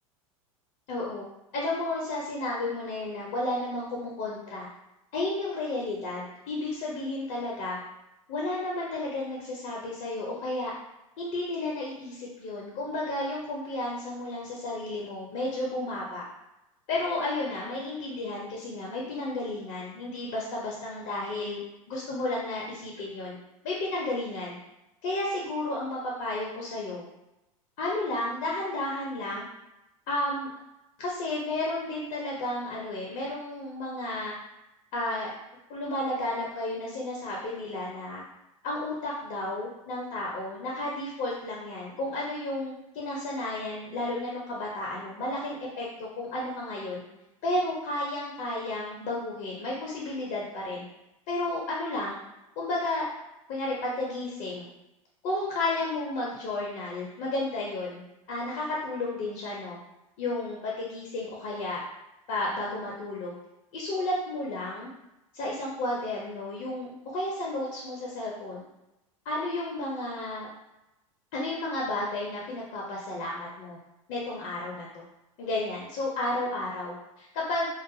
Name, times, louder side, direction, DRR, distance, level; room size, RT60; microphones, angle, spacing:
voice 1, 0.9-1.3 1.5-4.7 5.1-7.8 8.3-10.7 11.2-16.2 16.9-21.6 21.9-23.4 23.6-24.6 25.0-27.0 27.8-29.4 30.1-30.5 31.0-34.3 34.9-35.3 35.7-38.2 38.6-47.0 47.4-50.8 51.3-52.2 52.6-53.1 53.5-54.7 55.2-59.8 60.2-61.8 62.3-63.3 63.7-64.9 65.3-68.6 69.2-70.5 71.3-73.8 74.1-75.0 75.4-77.7, left 2 dB, 45° left, -4 dB, 0.6 m, -32 dB
2.4 x 2.3 x 2.6 m, 0.94 s
figure-of-eight pair, 85°, 18 cm